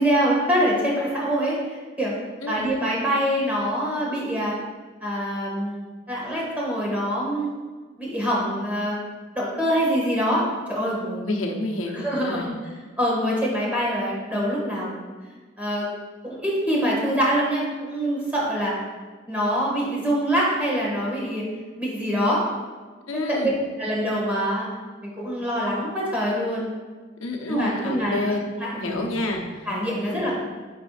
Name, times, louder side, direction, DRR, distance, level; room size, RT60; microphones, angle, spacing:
voice 1, 0.0-2.1 2.5-4.6 5.0-5.8 6.1-7.5 8.0-9.0 9.3-11.2 11.9-12.5 13.0-14.9 15.6-15.9 16.2-18.7 19.3-21.4 21.8-22.4 23.1-23.5 23.8-24.7 25.0-26.7 27.5-28.2 28.6-29.1 29.7-30.3, equal, 5° right, -5 dB, 1.8 m, -24 dB
voice 2, 11.2-12.5 23.1-23.5 27.2-28.4 28.8-29.7 30.0-30.2, left 2 dB, 85° left, 1 dB, 1.0 m, -29 dB
9.2 x 5.9 x 2.5 m, 1.4 s
head